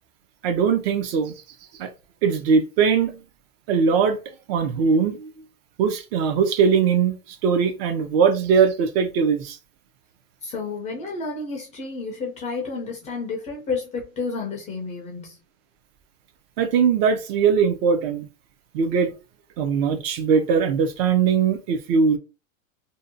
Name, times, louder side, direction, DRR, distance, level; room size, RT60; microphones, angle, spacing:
voice 1, 0.4-1.3 1.8-1.9 2.2-3.2 3.7-4.2 4.5-5.3 5.8-9.6 16.6-18.3 18.7-19.1 19.6-22.2, right 6 dB, 50° right, 0.5 m, -20 dB
voice 2, 10.4-15.4, left 4 dB, 20° left, 0.4 m, -31 dB
2.6 x 2.1 x 2.6 m
supercardioid pair, 135°, 41 cm